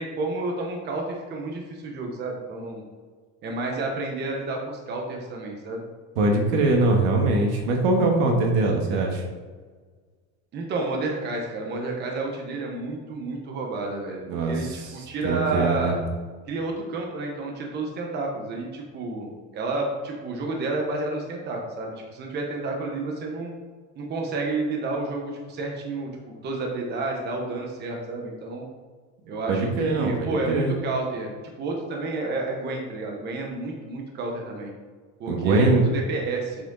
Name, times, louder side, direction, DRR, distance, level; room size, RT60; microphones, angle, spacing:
voice 1, 0.0-2.8 3.4-5.8 10.5-14.2 14.5-16.0 16.5-23.5 24.0-28.6 29.3-31.3 31.6-34.7 35.2-36.7, right 2 dB, 30° right, 1 dB, 1.1 m, -30 dB
voice 2, 6.1-9.3 14.3-15.9 29.2-30.7 35.3-35.8, right 2 dB, 80° right, 2 dB, 1.6 m, -22 dB
7.5 x 4.9 x 3.9 m, 1.5 s
cardioid pair, 160°, 32 cm